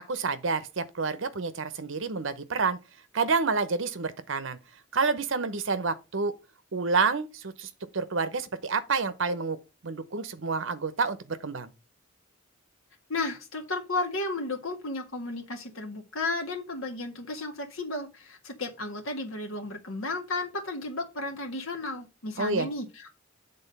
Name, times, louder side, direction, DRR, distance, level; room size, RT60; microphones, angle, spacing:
voice 1, 0.1-2.8 3.1-4.6 4.9-6.3 6.7-9.6 9.8-11.7 22.4-22.7, right 4 dB, 65° right, 0.8 m, -28 dB
voice 2, 13.1-23.1, left 2 dB, 80° left, 1.7 m, -33 dB
7.9 x 3.8 x 5.3 m
head